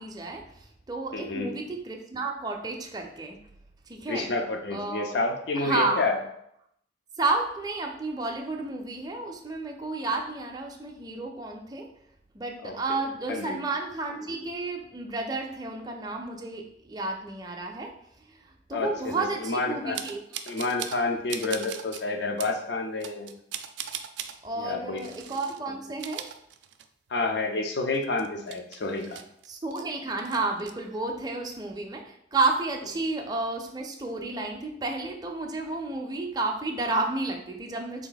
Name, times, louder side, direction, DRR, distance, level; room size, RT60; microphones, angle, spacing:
voice 1, 0.0-3.4 3.9-4.3 4.7-5.1 5.5-6.0 7.2-11.9 12.3-17.9 18.3-20.2 24.4-26.3 29.5-38.1, right 3 dB, 25° right, 2 dB, 0.4 m, -31 dB
voice 2, 1.1-1.5 4.1-6.2 12.6-12.8 13.3-13.6 18.7-20.0 20.5-23.3 24.5-25.1 27.1-29.2, left 3 dB, 75° left, 3 dB, 0.5 m, -29 dB
sound 1, 19.9-21.0 21.3-22.0 22.4-22.6 23.0-24.4 25.0-25.6 25.9-27.1 27.4-27.5 27.9-29.8 30.2-30.7, right 10 dB, 90° right, 0.3 m, -39 dB
3.5 x 2.5 x 3.9 m, 0.74 s
head